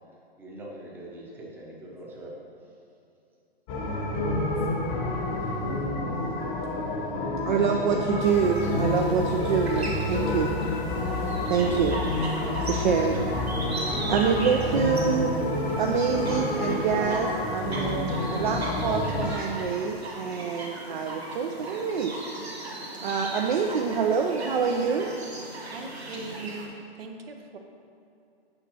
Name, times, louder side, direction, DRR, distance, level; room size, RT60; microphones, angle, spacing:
voice 1, 0.4-2.4, right 1 dB, 5° right, 0.8 m, -42 dB
sound 1, 3.7-19.3, left 2 dB, 30° left, 0.9 m, -29 dB
voice 2, 7.4-10.6 11.5-12.0 12.6-13.3 13.6-15.3 15.8-22.2 23.0-25.1, right 6 dB, 50° right, 0.5 m, -26 dB
sound 2, 8.2-26.7, right 2 dB, 85° right, 1.6 m, -38 dB
voice 3, 25.6-27.6, right 3 dB, 70° right, 0.9 m, -40 dB
8.9 x 5.9 x 2.8 m
hypercardioid pair, 130°, 31 cm